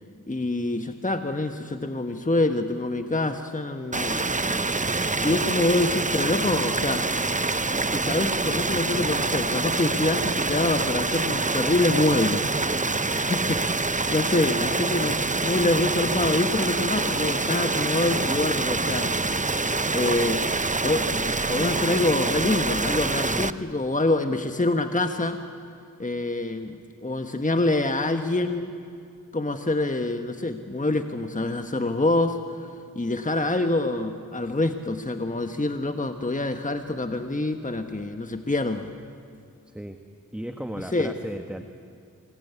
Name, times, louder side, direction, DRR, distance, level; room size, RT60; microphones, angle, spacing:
voice 1, 0.3-4.2 5.2-7.1 7.9-19.1 19.9-20.4 20.8-25.4 26.0-28.7 29.3-32.7 32.9-38.9 40.9-41.1, left 2 dB, 25° left, 7 dB, 1.4 m, -26 dB
sound 1, 3.9-23.5, right 3 dB, 25° right, 0.8 m, -26 dB
voice 2, 23.2-23.6 39.7-40.0 40.3-41.6, equal, 5° right, 6 dB, 1.6 m, -36 dB
26.0 x 21.5 x 9.6 m, 2.3 s
cardioid pair, 45°, 32 cm